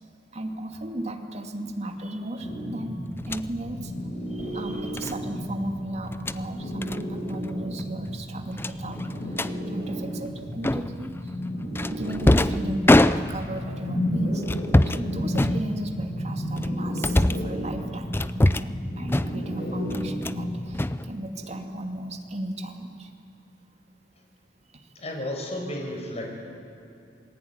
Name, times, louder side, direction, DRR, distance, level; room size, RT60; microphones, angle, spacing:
voice 1, 0.3-3.9 4.3-9.4 9.7-14.4 14.8-23.1 24.7-24.9, right 1 dB, 35° right, 4 dB, 2.6 m, -35 dB
sound 1, 2.4-20.6, equal, 55° left, 7.5 m, -32 dB
sound 2, 3.2-3.5 5.0-5.2 6.0-6.4 6.8-7.0 7.3-7.5 7.8-7.9 8.6-9.5 10.6-11.1 11.7-13.6 14.4-15.0 15.3-16.1 16.6-17.5 18.1-18.8 19.1-19.6 19.9-20.4 20.7-21.6, left 1 dB, 10° left, 0.5 m, -23 dB
voice 2, 25.0-26.3, left 1 dB, 35° left, 1 dB, 5.3 m, -32 dB
27.5 x 20.5 x 9.7 m, 2.8 s
head